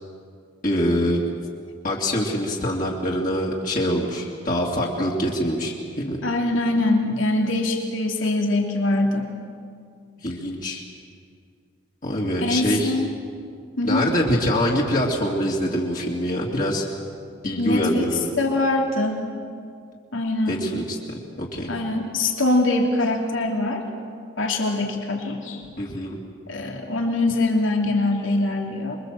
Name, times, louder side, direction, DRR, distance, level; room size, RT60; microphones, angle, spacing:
voice 1, 0.6-1.2 1.8-6.2 10.2-10.8 12.0-12.9 13.8-16.8 17.4-18.4 20.5-21.7 25.8-26.2, equal, 45° left, -3 dB, 2.7 m, -24 dB
voice 2, 6.2-9.3 12.4-13.1 13.8-14.1 17.6-18.1 18.4-19.2 20.1-20.6 21.7-23.8 24.4-25.6 26.5-29.0, left 2 dB, 85° left, 1 dB, 3.0 m, -23 dB
27.0 x 23.0 x 7.8 m, 2.2 s
head